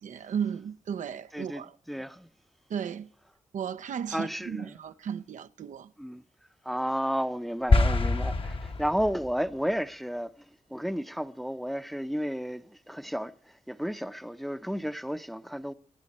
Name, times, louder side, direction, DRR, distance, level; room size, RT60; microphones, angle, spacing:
voice 1, 0.0-1.8 2.7-3.1 3.5-5.9, right 8 dB, 75° right, 0.6 m, -35 dB
voice 2, 1.3-2.3 4.1-4.7 6.0-6.2 6.6-10.3 10.7-13.3 13.7-15.7, equal, ahead, 0.6 m, -32 dB
sound 1, 7.7-9.3, left 3 dB, 45° left, 0.9 m, -25 dB
25.0 x 8.9 x 4.2 m
cardioid pair, 80°, 13 cm